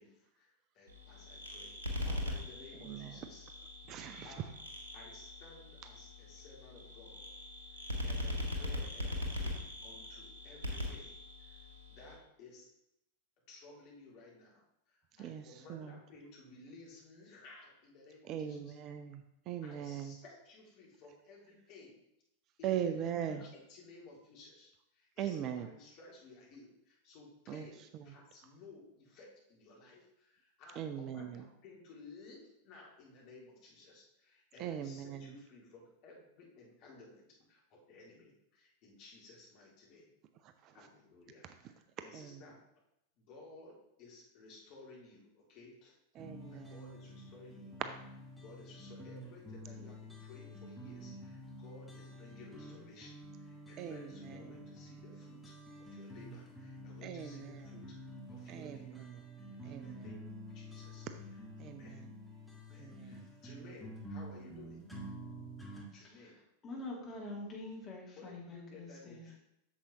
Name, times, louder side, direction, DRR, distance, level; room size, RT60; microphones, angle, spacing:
voice 1, 0.0-3.5 4.2-4.5 4.9-7.3 7.7-11.1 11.4-11.6 11.9-12.7 13.5-18.7 19.6-22.0 22.6-40.1 40.7-42.6 43.2-45.9 46.5-47.8 48.4-59.0 59.6-60.3 60.5-61.1 61.6-62.0 62.6-64.8 65.9-66.4 68.2-69.4, left 3 dB, 40° left, -3 dB, 2.4 m, -56 dB
sound 1, 0.9-12.1, left 1 dB, 75° right, 1.4 m, -41 dB
voice 2, 2.8-3.2 3.9-4.4 15.2-16.0 18.3-20.2 22.6-23.4 25.2-25.7 27.5-27.7 27.9-28.1 30.8-31.5 34.6-35.3 40.4-40.8 42.1-42.4 46.2-46.9 53.8-54.6 57.0-57.7 58.5-59.2 59.6-60.2 61.6-62.1 62.8-63.3, right 9 dB, 35° right, 9 dB, 0.5 m, -41 dB
sound 2, 46.2-65.8, equal, ahead, 1.5 m, -49 dB
voice 3, 66.6-69.2, left 2 dB, 25° left, -3 dB, 2.5 m, -45 dB
8.6 x 6.9 x 2.9 m, 0.81 s
figure-of-eight pair, 90°, 0 cm